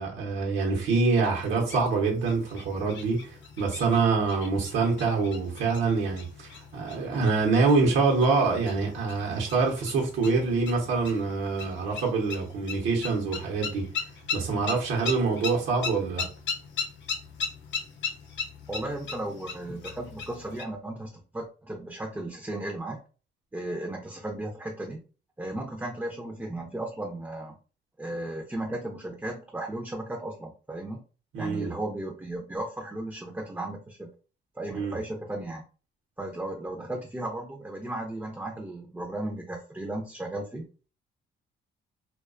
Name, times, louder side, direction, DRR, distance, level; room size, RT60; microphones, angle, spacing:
voice 1, 0.0-13.9 14.3-16.3 31.3-31.7 34.7-35.0, right 4 dB, 75° right, 0.8 m, -25 dB
sound 1, 1.1-20.6, left 5 dB, 65° left, 0.6 m, -39 dB
voice 2, 18.7-23.0 23.5-25.0 25.4-27.6 28.0-31.0 31.4-34.1 34.6-35.6 36.2-40.6, right 1 dB, 10° right, 0.4 m, -35 dB
2.3 x 2.2 x 2.4 m
cardioid pair, 90°, 20 cm